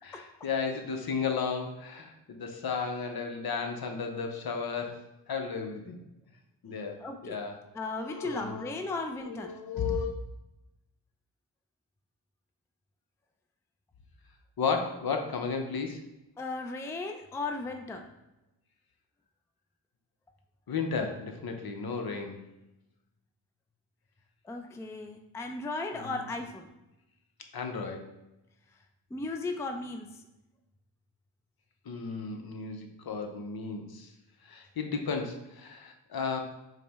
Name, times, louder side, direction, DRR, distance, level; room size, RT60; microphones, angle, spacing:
voice 1, 0.0-6.0 6.6-7.6 8.0-8.8 9.2-10.1 14.6-16.0 20.7-22.4 25.9-26.2 27.5-28.1 31.9-34.1 34.4-36.4, left 5 dB, 55° left, 4 dB, 0.7 m, -34 dB
voice 2, 7.0-7.4 7.7-9.5 16.4-18.1 24.5-26.7 29.1-30.1, left 3 dB, 5° left, 4 dB, 0.4 m, -36 dB
4.9 x 2.1 x 3.4 m, 0.94 s
cardioid pair, 45°, 44 cm